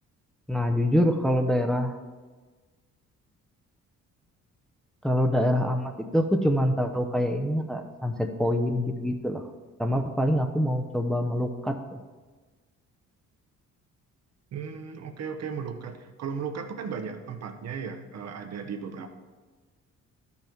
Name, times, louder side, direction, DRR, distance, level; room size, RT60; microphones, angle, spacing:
voice 1, 0.5-2.0 5.0-9.4 9.8-12.0, equal, ahead, 5 dB, 0.7 m, -25 dB
voice 2, 14.5-19.1, right 6 dB, 60° right, 7 dB, 0.9 m, -36 dB
12.0 x 5.6 x 4.5 m, 1.4 s
cardioid pair, 90°, 30 cm